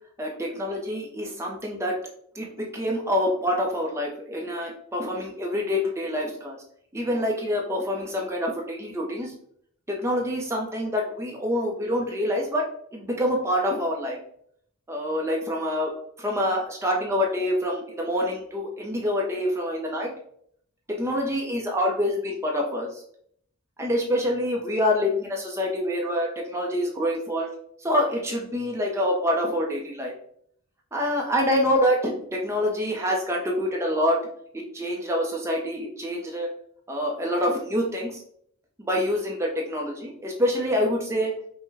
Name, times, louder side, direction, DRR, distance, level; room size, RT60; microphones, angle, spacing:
voice 1, 0.2-1.9 2.4-6.6 6.9-9.3 9.9-12.6 12.9-14.2 14.9-15.9 16.2-20.1 21.0-23.0 23.8-27.5 27.8-30.1 30.9-34.2 34.7-36.5 36.9-38.2 38.8-41.3, left 1 dB, 15° right, -1 dB, 0.6 m, -26 dB
5.2 x 2.2 x 3.4 m, 0.67 s
head